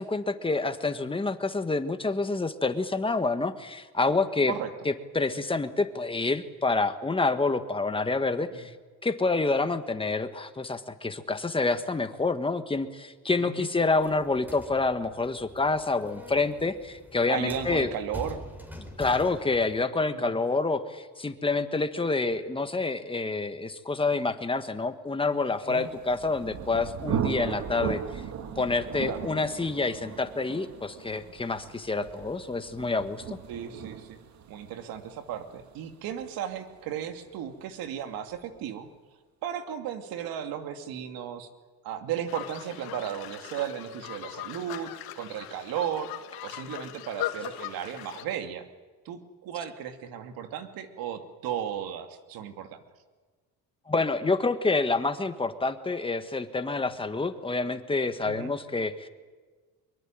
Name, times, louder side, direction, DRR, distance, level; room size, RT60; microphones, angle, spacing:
voice 1, 0.0-4.5 4.8-8.7 9.0-17.9 19.0-28.2 28.6-33.4 53.9-59.1, left 3 dB, 15° left, 9 dB, 1.7 m, -28 dB
voice 2, 13.4-13.7 17.3-18.4 20.1-20.3 25.7-25.9 29.0-29.2 33.5-34.2 34.5-38.9 39.4-41.5 41.8-44.9 45.2-46.1 46.4-48.6 49.0-52.8 58.2-58.5, right 9 dB, 75° right, 7 dB, 2.7 m, -35 dB
sound 1, 14.0-19.8, left 1 dB, 5° right, 5.0 m, -45 dB
Thunder, 25.7-37.3, right 8 dB, 50° right, 2.2 m, -37 dB
sound 2, 42.3-48.2, left 13 dB, 85° left, 2.3 m, -39 dB
24.0 x 22.5 x 9.1 m, 1.4 s
cardioid pair, 115°, 36 cm